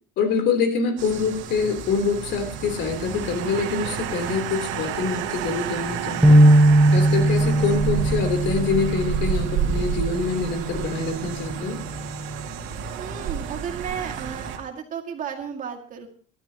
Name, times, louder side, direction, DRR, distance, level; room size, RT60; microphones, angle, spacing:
voice 1, 0.2-6.4 6.9-11.8, left 5 dB, 60° left, 7 dB, 3.6 m, -25 dB
sound 1, 1.0-14.6, right 7 dB, 65° right, 2.4 m, -31 dB
sound 2, 2.2-8.6, right 14 dB, 90° right, 1.2 m, -35 dB
sound 3, 6.2-12.5, right 1 dB, 5° right, 1.0 m, -20 dB
voice 2, 13.0-16.1, right 7 dB, 40° right, 4 dB, 2.2 m, -33 dB
23.0 x 12.5 x 3.0 m, 0.39 s
cardioid pair, 170°, 21 cm